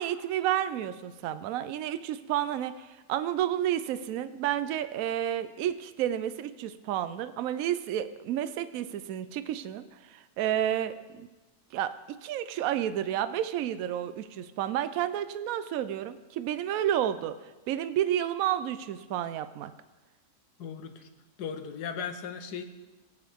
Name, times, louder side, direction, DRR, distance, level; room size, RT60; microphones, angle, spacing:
voice 1, 0.0-11.3 11.7-17.4 17.7-19.7, right 11 dB, 70° right, 12 dB, 1.0 m, -31 dB
voice 2, 20.6-21.1 21.4-22.6, left 7 dB, 85° left, 8 dB, 1.4 m, -37 dB
17.5 x 8.2 x 3.6 m, 1.2 s
omnidirectional pair, 1.7 m